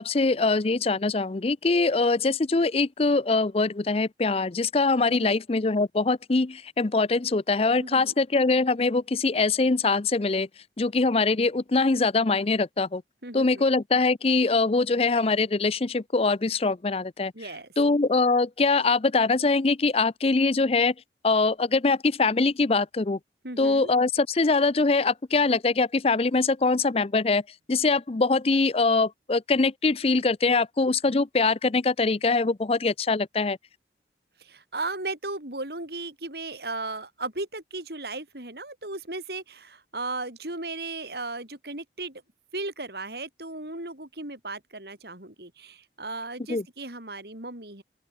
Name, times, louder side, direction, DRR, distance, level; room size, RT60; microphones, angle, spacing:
voice 1, 0.0-10.5 10.8-13.0 13.3-17.3 17.8-20.9 21.2-23.2 23.6-27.4 27.7-33.6 46.5-46.6, left 3 dB, 35° left, 0.5 m, -23 dB
voice 2, 7.8-8.1 13.2-13.7 17.3-17.7 23.4-23.9 34.4-42.2 42.5-47.8, right 2 dB, 65° right, 5.6 m, -36 dB
open air
head